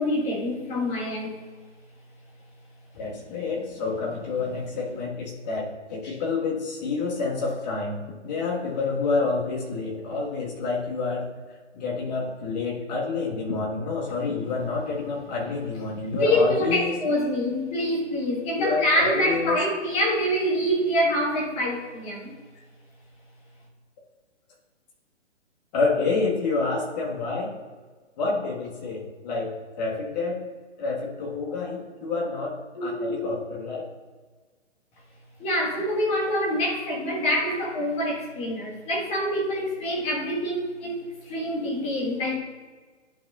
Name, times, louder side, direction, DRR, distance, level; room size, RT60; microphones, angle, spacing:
voice 1, 0.0-1.4 16.2-22.3 35.4-42.4, equal, 15° left, -3 dB, 1.5 m, -25 dB
voice 2, 2.9-11.3 11.7-16.9 18.6-19.6 25.7-27.5 28.2-30.5 30.8-33.8, left 4 dB, 35° left, -1 dB, 1.6 m, -28 dB
11.0 x 5.1 x 2.4 m, 1.4 s
figure-of-eight pair, 135°, 36 cm